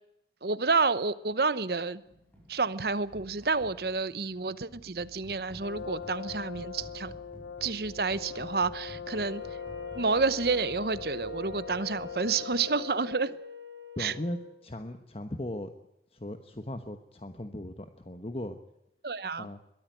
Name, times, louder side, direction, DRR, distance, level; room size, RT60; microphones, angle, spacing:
voice 1, 0.4-2.0 2.5-7.1 7.6-9.4 9.9-13.3 14.0-14.1 19.0-19.5, right 4 dB, 60° right, 16 dB, 0.9 m, -29 dB
sound 1, 2.1-12.9, equal, 10° left, 5.2 m, -52 dB
Brass instrument, 5.6-13.4, left 7 dB, 75° left, 0.8 m, -41 dB
Wind instrument woodwind instrument, 9.2-14.5, left 1 dB, 85° right, 4.0 m, -45 dB
voice 2, 14.0-15.7 16.1-18.6 19.4-19.6, left 1 dB, 35° left, 8 dB, 1.1 m, -38 dB
22.0 x 13.5 x 9.1 m, 0.87 s
head